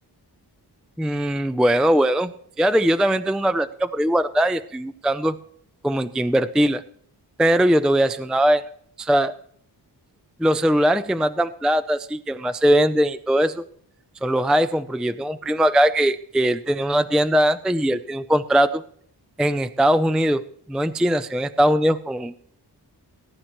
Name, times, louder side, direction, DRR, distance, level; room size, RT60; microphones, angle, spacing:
voice 1, 1.0-2.3 2.6-5.4 5.8-6.8 7.4-8.6 9.0-9.3 10.4-13.6 14.2-18.8 19.4-22.4, equal, ahead, 12 dB, 0.4 m, -20 dB
18.5 x 10.0 x 3.0 m, 0.64 s
wide cardioid pair, 145°, 40 cm